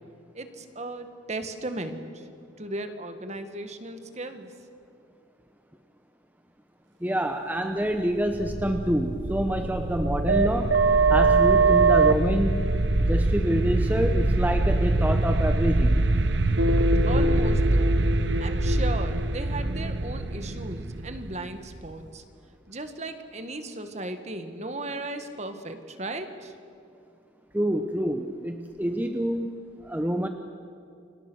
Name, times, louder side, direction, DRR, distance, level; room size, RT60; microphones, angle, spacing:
voice 1, 0.3-2.3 2.6-4.5 17.1-18.0 18.4-22.2 22.7-26.5, right 2 dB, 35° right, 8 dB, 1.8 m, -36 dB
voice 2, 7.0-10.7 11.1-12.7 13.1-16.0 27.5-30.3, equal, 10° right, 6 dB, 0.9 m, -27 dB
sound 1, 8.2-21.9, right 3 dB, 70° right, 1.2 m, -23 dB
29.5 x 25.0 x 6.4 m, 2.6 s
head